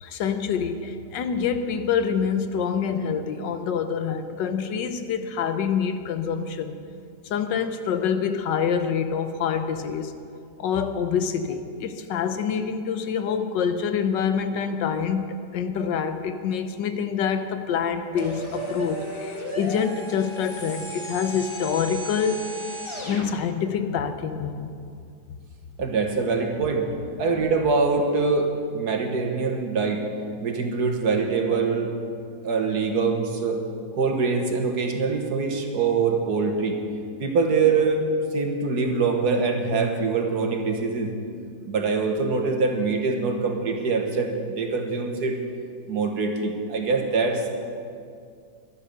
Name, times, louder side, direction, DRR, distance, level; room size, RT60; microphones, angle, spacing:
voice 1, 0.0-6.7 7.3-10.1 10.6-22.5 23.0-24.7, left 7 dB, 80° left, 9 dB, 1.5 m, -26 dB
sound 1, 18.2-23.3, right 1 dB, 15° left, 1.5 m, -35 dB
voice 2, 25.8-26.9 27.2-30.0 30.4-31.9 32.4-33.6 34.0-36.8 37.2-38.0 38.3-41.1 41.7-45.4 45.9-47.5, right 4 dB, 65° right, 3 dB, 1.8 m, -24 dB
12.0 x 11.0 x 6.6 m, 2.3 s
omnidirectional pair, 1.9 m